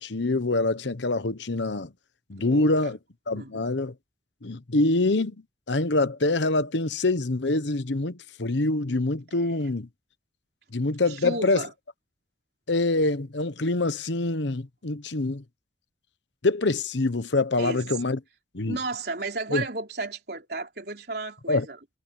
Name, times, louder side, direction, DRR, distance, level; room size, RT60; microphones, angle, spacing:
voice 1, 0.0-1.9 2.3-3.0 3.3-3.9 4.4-5.4 5.7-9.9 10.7-11.6 12.7-15.4 16.4-18.2 18.5-18.8 19.5-19.6 21.5-21.7, left 2 dB, 80° left, 1.1 m, -25 dB
voice 2, 2.4-2.9 3.3-3.7 9.3-9.6 11.1-11.7 17.6-18.0 18.7-21.8, right 3 dB, 60° right, 3.9 m, -34 dB
head